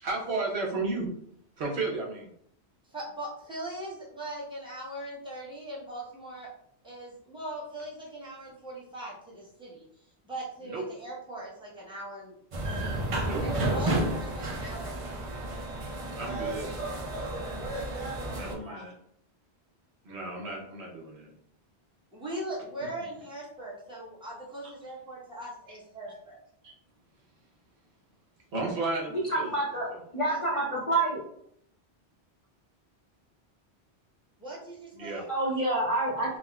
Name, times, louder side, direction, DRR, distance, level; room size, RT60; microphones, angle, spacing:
voice 1, 0.0-1.1 1.6-2.3 10.6-10.8 13.1-13.4 13.9-14.0 16.2-16.7 18.3-18.9 20.1-21.3 24.6-24.7 28.5-29.5 29.9-30.0 34.9-35.2, right 3 dB, 80° right, -3 dB, 1.1 m, -33 dB
voice 2, 2.9-6.5 6.8-9.9 10.2-12.3 12.7-15.3 18.1-18.8 22.1-26.4 30.3-31.0 34.4-35.3, right 1 dB, 5° right, -6 dB, 0.8 m, -40 dB
sound 1, 12.5-18.5, right 1 dB, 55° right, 0.4 m, -32 dB
voice 3, 29.3-31.2 35.3-36.4, right 2 dB, 35° left, -6 dB, 0.6 m, -28 dB
3.7 x 2.0 x 2.3 m, 0.70 s
omnidirectional pair, 1.1 m